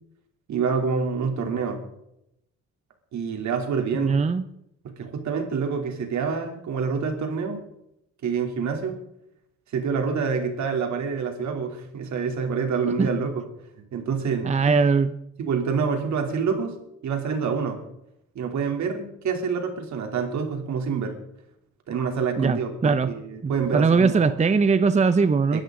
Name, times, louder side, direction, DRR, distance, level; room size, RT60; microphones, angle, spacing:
voice 1, 0.5-1.8 3.1-4.2 4.8-7.6 8.2-9.0 9.7-13.4 13.9-14.7 15.4-16.7 17.0-17.8 18.3-21.2 21.9-24.3 25.5-25.6, right 5 dB, 65° right, 4 dB, 3.2 m, -27 dB
voice 2, 3.9-4.4 13.0-13.1 14.4-15.1 22.4-23.1 23.4-25.6, right 5 dB, 25° right, 12 dB, 0.7 m, -20 dB
22.0 x 12.5 x 3.8 m, 0.81 s
cardioid pair, 90°, 30 cm